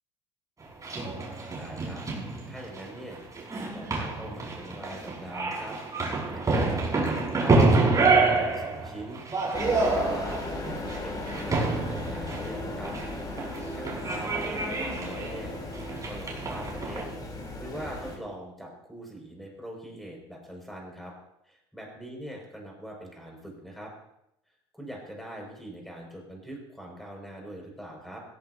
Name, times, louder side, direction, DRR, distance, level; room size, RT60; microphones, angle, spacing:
sound 1, 0.6-17.0, right 3 dB, 25° right, 6.1 m, -28 dB
voice 1, 1.5-2.0 2.5-5.8 6.3-6.9 7.4-9.2 9.9-12.9 13.7-15.6 16.0-17.0 17.3-21.1 21.4-23.9 24.7-28.2, equal, ahead, 0 dB, 6.6 m, -42 dB
sound 2, 9.5-18.2, left 2 dB, 25° left, 4.8 m, -36 dB
17.0 x 16.5 x 3.0 m, 0.81 s
hypercardioid pair, 70°, 14 cm